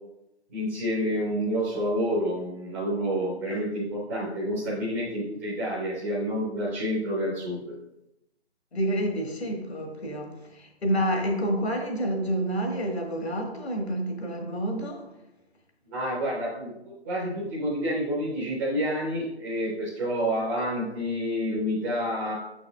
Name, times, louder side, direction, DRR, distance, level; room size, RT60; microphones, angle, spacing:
voice 1, 0.5-7.7 15.9-16.7 17.0-22.3, equal, 15° right, -8 dB, 0.6 m, -28 dB
voice 2, 8.7-15.1, right 1 dB, 70° left, 3 dB, 1.5 m, -29 dB
7.4 x 6.1 x 2.2 m, 0.90 s
figure-of-eight pair, 145°, 33 cm